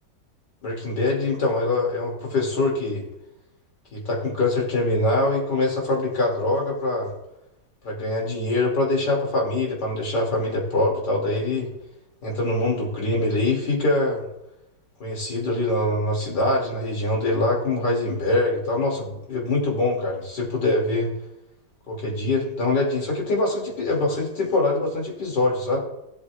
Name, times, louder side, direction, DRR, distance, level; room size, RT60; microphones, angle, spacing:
voice 1, 0.6-3.0 3.9-7.1 7.8-11.7 12.2-14.2 15.0-21.1 21.9-25.8, left 2 dB, 80° left, -1 dB, 3.1 m, -24 dB
15.5 x 8.3 x 2.4 m, 0.85 s
omnidirectional pair, 1.8 m